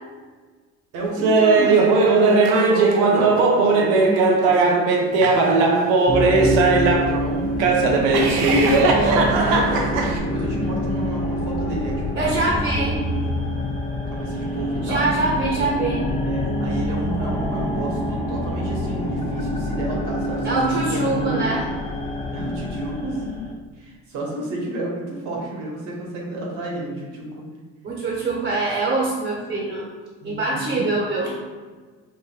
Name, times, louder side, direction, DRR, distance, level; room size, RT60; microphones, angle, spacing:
voice 1, 0.9-5.8 6.2-13.2 14.1-15.0 15.6-15.8 16.2-21.6 22.3-23.4 23.8-27.4 30.2-30.9, right 1 dB, 70° right, -2 dB, 1.1 m, -31 dB
Laughter, 1.2-7.2 7.6-10.2, right 3 dB, 90° right, 0.6 m, -18 dB
sound 1, 6.1-23.5, left 1 dB, 20° left, 0.7 m, -26 dB
voice 2, 12.1-13.0 14.8-16.1 20.4-21.6 27.8-29.9 30.2-31.4, right 3 dB, 30° right, -4 dB, 1.0 m, -24 dB
4.6 x 2.5 x 2.3 m, 1.4 s
supercardioid pair, 80°, 32 cm